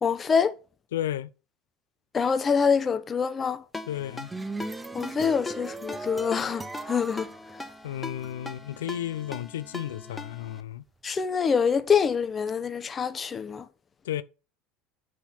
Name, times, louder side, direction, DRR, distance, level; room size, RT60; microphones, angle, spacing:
voice 1, 0.0-0.5 2.1-3.6 4.9-7.3 11.0-13.6, left 6 dB, 30° left, 0.8 m, -25 dB
voice 2, 0.9-1.3 3.9-4.3 7.8-10.8 14.0-14.2, left 12 dB, 85° left, 0.4 m, -33 dB
Ringtone, 3.7-10.6, left 3 dB, 15° left, 1.2 m, -41 dB
sound 1, 4.0-8.3, right 2 dB, 15° right, 0.8 m, -38 dB
8.1 x 6.0 x 4.3 m
hypercardioid pair, 90°, 0 cm